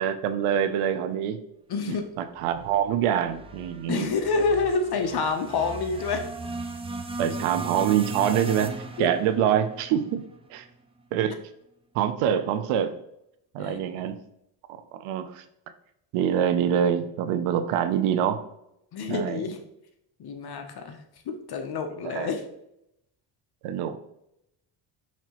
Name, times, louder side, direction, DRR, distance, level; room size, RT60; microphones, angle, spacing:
voice 1, 0.0-1.4 1.9-4.1 7.2-8.7 9.0-10.2 10.5-10.6 11.1-11.4 11.9-12.9 13.5-14.2 14.9-15.4 16.1-18.4 19.1-19.4 21.9-22.3 23.6-24.0, right 9 dB, 85° right, 10 dB, 0.6 m, -25 dB
voice 2, 1.7-2.1 3.9-6.3 8.1-8.3 9.0-9.2 13.6-13.9 18.9-19.6 20.2-21.0 21.3-22.4, left 4 dB, 50° left, 6 dB, 0.7 m, -28 dB
sound 1, 2.4-10.7, right 3 dB, 15° right, 0.3 m, -38 dB
5.9 x 2.8 x 2.9 m, 0.79 s
cardioid pair, 95°, 50 cm